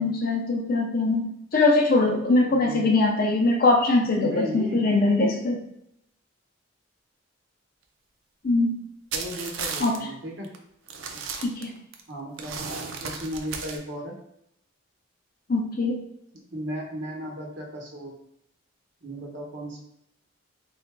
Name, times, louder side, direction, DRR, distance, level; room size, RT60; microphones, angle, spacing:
voice 1, 0.0-5.6 8.4-8.8 9.8-10.0 11.4-11.7 15.5-16.0, left 2 dB, 45° left, 2 dB, 0.5 m, -22 dB
voice 2, 2.5-2.9 4.2-4.8 9.1-10.5 12.1-14.1 16.5-18.1 19.0-19.8, equal, 65° right, -1 dB, 1.0 m, -35 dB
sound 1, 9.1-10.0 10.4-10.6 10.9-12.0 12.4-13.8, right 5 dB, 80° right, 0.5 m, -34 dB
3.8 x 3.4 x 2.2 m, 0.77 s
head